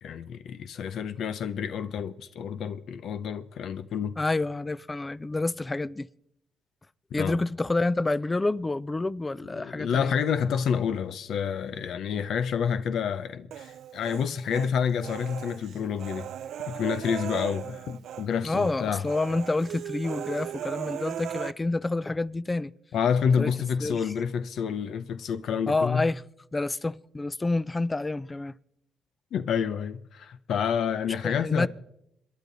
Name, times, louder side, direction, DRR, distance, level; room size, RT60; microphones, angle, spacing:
voice 1, 0.0-4.1 7.2-7.4 9.5-16.3 16.7-19.0 22.9-26.0 29.3-31.7, left 7 dB, 70° left, 0.6 m, -28 dB
voice 2, 4.2-6.1 7.1-10.1 18.4-22.7 23.4-23.5 23.8-24.0 25.7-26.2 26.5-28.5 31.2-31.7, left 2 dB, 20° left, 0.5 m, -28 dB
Human voice, 13.5-14.7 15.0-18.3 18.5-18.7 19.0-21.5, right 10 dB, 75° right, 0.4 m, -37 dB
26.5 x 10.5 x 4.1 m
cardioid pair, 90°, 0 cm